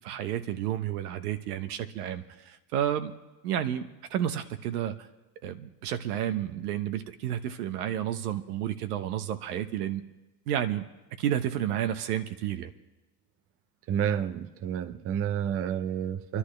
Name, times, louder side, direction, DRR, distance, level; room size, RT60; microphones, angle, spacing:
voice 1, 0.0-3.1 3.4-4.9 5.4-10.0 10.5-10.8 11.2-12.7, right 10 dB, 75° right, 1.2 m, -31 dB
voice 2, 13.9-16.4, right 9 dB, 30° right, 0.6 m, -30 dB
29.0 x 11.5 x 3.3 m
hypercardioid pair, 110°, 47 cm